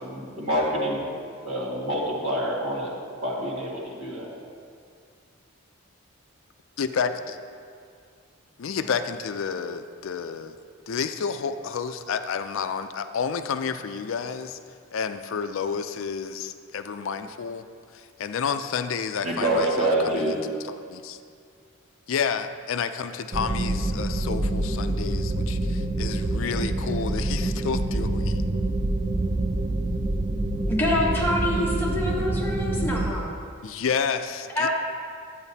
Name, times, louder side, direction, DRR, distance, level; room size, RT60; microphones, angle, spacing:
voice 1, 0.1-1.0 1.4-2.9 3.2-4.3 19.2-20.3, right 1 dB, 80° right, -4 dB, 1.9 m, -26 dB
voice 2, 6.8-7.4 8.6-10.6 10.9-14.6 14.9-17.7 17.9-21.2 22.1-28.4 33.6-34.7, left 6 dB, 65° left, 9 dB, 0.4 m, -30 dB
sound 1, 23.3-33.1, right 2 dB, 25° right, 0.4 m, -26 dB
voice 3, 30.7-33.3 34.6-34.7, left 1 dB, 10° left, -3 dB, 1.0 m, -26 dB
10.5 x 8.9 x 2.8 m, 2.2 s
head